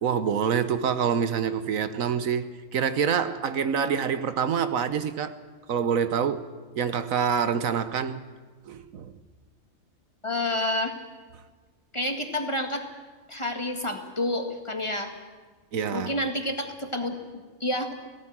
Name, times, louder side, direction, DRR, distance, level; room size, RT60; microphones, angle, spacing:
voice 1, 0.0-5.4 5.7-6.5 6.8-8.2 8.7-9.1 15.7-16.1, right 7 dB, 75° right, 1.3 m, -26 dB
voice 2, 10.2-10.9 11.9-12.9 13.3-15.1 15.9-17.9, left 1 dB, 20° left, 1.8 m, -29 dB
18.0 x 17.0 x 8.9 m
omnidirectional pair, 1.4 m